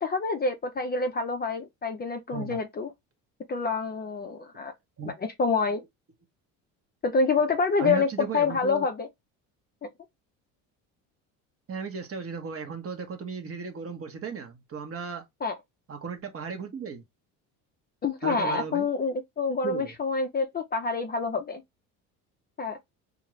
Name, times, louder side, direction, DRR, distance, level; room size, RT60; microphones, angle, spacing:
voice 1, 0.0-2.9 3.5-4.7 5.4-5.8 7.0-8.1 8.3-9.1 9.8-9.9 15.4-15.5 18.0-21.6 22.6-22.8, left 4 dB, 25° left, 0.5 m, -27 dB
voice 2, 7.8-8.9 11.7-15.2 15.9-17.0 18.2-18.9 19.6-19.9, right 5 dB, 35° right, 1.0 m, -35 dB
2.5 x 2.3 x 3.0 m
supercardioid pair, 85°, 39 cm